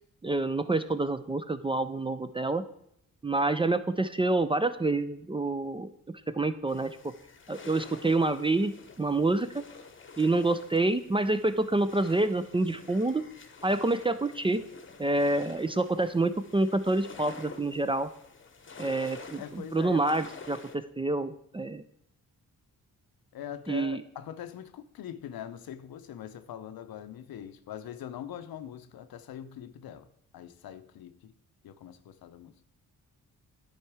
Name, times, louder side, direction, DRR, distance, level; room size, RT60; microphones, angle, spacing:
voice 1, 0.2-2.6 3.2-7.0 7.5-9.6 10.2-13.3 13.6-14.6 15.0-18.1 18.8-21.8 23.7-24.0, right 2 dB, 15° right, 0.3 m, -27 dB
sound 1, 6.7-20.8, left 4 dB, 35° left, 0.9 m, -49 dB
voice 2, 19.4-20.1 23.3-30.1 30.3-31.3 31.6-32.5, left 10 dB, 85° left, 0.7 m, -42 dB
10.5 x 4.5 x 4.7 m
cardioid pair, 95°, 35 cm